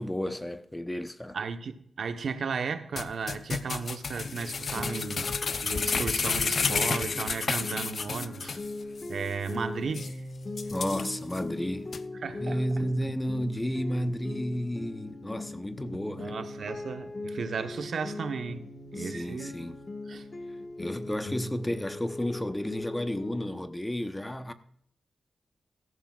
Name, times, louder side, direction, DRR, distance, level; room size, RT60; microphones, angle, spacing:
voice 1, 0.0-1.4 10.7-11.9 12.4-16.4 19.0-19.8 20.8-24.5, equal, 10° left, 0.9 m, -32 dB
voice 2, 1.3-5.3 5.6-8.6 9.1-10.2 12.2-12.6 16.2-18.6 18.9-19.6 20.1-20.3, right 5 dB, 70° right, 1.1 m, -35 dB
sound 1, 3.0-8.7 9.0-9.1 9.5-9.6 9.9-10.1 10.6-11.4 11.9-12.0, left 5 dB, 60° left, 0.6 m, -31 dB
sound 2, 4.2-23.6, left 2 dB, 35° left, 1.3 m, -40 dB
16.5 x 14.0 x 2.4 m
cardioid pair, 80°, 0 cm